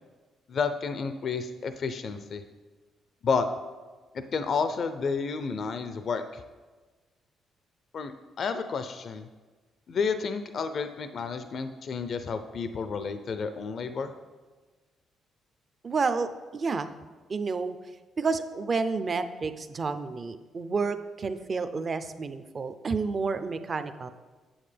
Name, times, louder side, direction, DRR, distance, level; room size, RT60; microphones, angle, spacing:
voice 1, 0.5-2.4 3.2-3.5 4.1-6.4 7.9-8.1 8.4-9.3 9.9-14.1, left 5 dB, 55° left, 10 dB, 0.4 m, -31 dB
voice 2, 15.8-16.3 16.5-16.9 17.3-17.8 18.2-24.1, right 4 dB, 40° right, 10 dB, 0.5 m, -30 dB
8.7 x 7.1 x 3.3 m, 1.3 s
cardioid pair, 90°, 0 cm